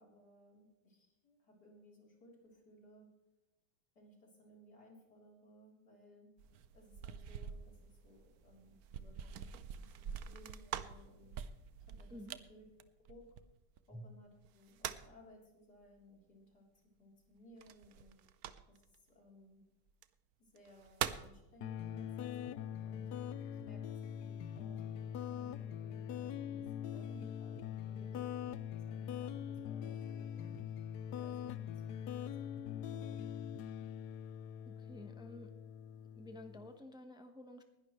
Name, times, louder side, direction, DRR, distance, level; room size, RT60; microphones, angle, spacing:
voice 1, 0.0-3.1 4.0-6.3 6.7-11.3 12.0-12.6 13.1-13.3 13.9-16.6 17.0-18.2 18.7-18.8 19.1-19.6 20.4-23.1 23.5-28.2 28.7-30.8 31.1-33.3, left 1 dB, 50° left, -1 dB, 4.1 m, -61 dB
sound 1, 6.4-13.8 14.4-15.2 17.6-18.9 19.9-20.0 20.6-21.4, right 9 dB, 65° right, 0.9 m, -45 dB
sound 2, 21.6-36.7, left 9 dB, 70° left, 1.0 m, -43 dB
voice 2, 34.6-35.5 36.1-37.6, left 1 dB, 5° right, 6 dB, 0.6 m, -51 dB
20.0 x 11.5 x 3.1 m, 0.97 s
omnidirectional pair, 2.2 m